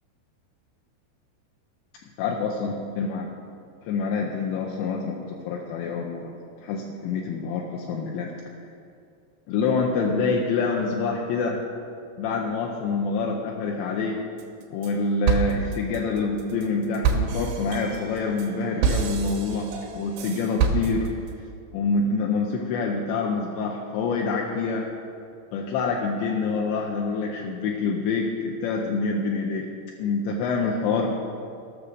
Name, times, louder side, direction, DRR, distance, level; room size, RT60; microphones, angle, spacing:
voice 1, 2.2-3.3 3.9-6.3 6.6-8.3 9.5-11.6 12.2-14.2 14.7-21.1 21.7-24.9 25.5-29.7 30.0-31.1, left 4 dB, 80° left, 0 dB, 2.9 m, -26 dB
sound 1, 14.4-14.9 15.3-21.3, right 6 dB, 75° right, 3.2 m, -27 dB
17.0 x 6.3 x 6.7 m, 2.5 s
omnidirectional pair, 5.6 m